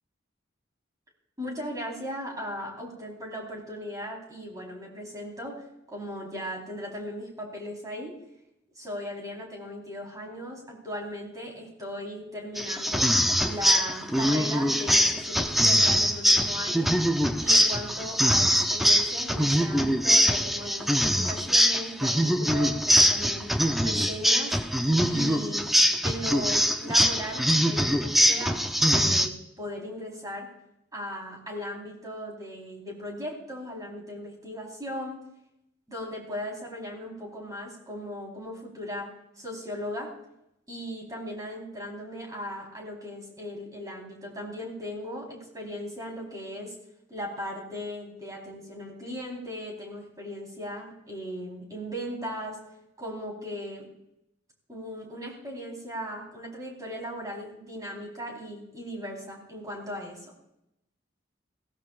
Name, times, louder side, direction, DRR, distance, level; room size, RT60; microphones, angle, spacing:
voice 1, 1.4-8.1 8.8-13.1 13.4-17.0 17.4-23.5 23.8-24.6 25.0-25.7 26.0-30.5 30.9-35.2 35.9-40.1 40.7-46.7 47.1-52.6 53.0-53.9 54.7-60.3, equal, 20° right, -1 dB, 4.1 m, -37 dB
sound 1, 12.5-29.3, equal, ahead, 0.6 m, -23 dB
20.5 x 16.5 x 2.5 m, 0.81 s
head